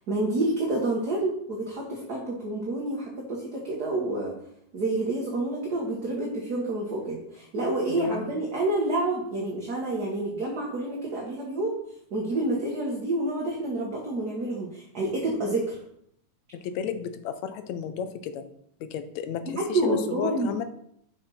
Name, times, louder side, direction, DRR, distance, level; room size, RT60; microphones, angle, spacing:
voice 1, 0.1-4.3 4.7-11.8 12.1-15.8 19.6-20.5, right 2 dB, 40° right, -2 dB, 1.7 m, -28 dB
voice 2, 7.9-8.4 16.5-18.4 18.8-20.6, left 8 dB, 70° left, 10 dB, 2.0 m, -33 dB
8.4 x 6.4 x 5.8 m, 0.70 s
omnidirectional pair, 3.6 m